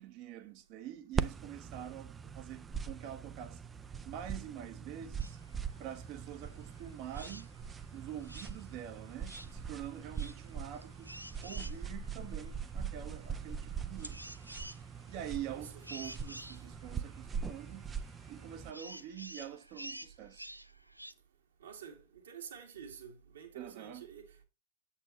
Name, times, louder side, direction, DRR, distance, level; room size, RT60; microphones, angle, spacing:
voice 1, 0.0-3.6 4.0-5.4 5.8-7.5 7.9-11.1 11.4-14.3 15.1-17.9 18.3-20.5 23.5-24.0, right 10 dB, 45° right, 1.2 m, -46 dB
sound 1, 1.1-18.7, right 6 dB, 20° right, 0.6 m, -42 dB
sound 2, 5.2-21.1, right 1 dB, 85° right, 0.5 m, -52 dB
voice 2, 21.6-24.4, right 8 dB, 65° right, 2.3 m, -49 dB
8.5 x 8.3 x 3.0 m
figure-of-eight pair, 90°, 0 cm